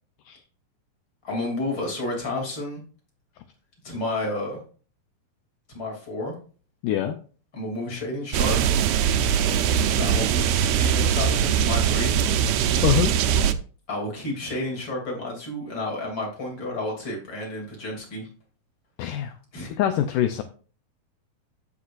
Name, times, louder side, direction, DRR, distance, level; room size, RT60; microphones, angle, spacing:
voice 1, 1.2-2.8 3.8-4.6 5.7-6.3 7.5-8.6 9.9-12.1 13.9-18.3 19.5-19.8, left 2 dB, 35° left, 0 dB, 3.3 m, -31 dB
voice 2, 6.8-7.2 12.8-13.1 19.0-19.3 19.8-20.4, left 10 dB, 80° left, 8 dB, 2.1 m, -23 dB
sound 1, 8.3-13.5, right 8 dB, 85° right, 1.5 m, -21 dB
16.0 x 6.0 x 2.5 m, 0.39 s
omnidirectional pair, 4.0 m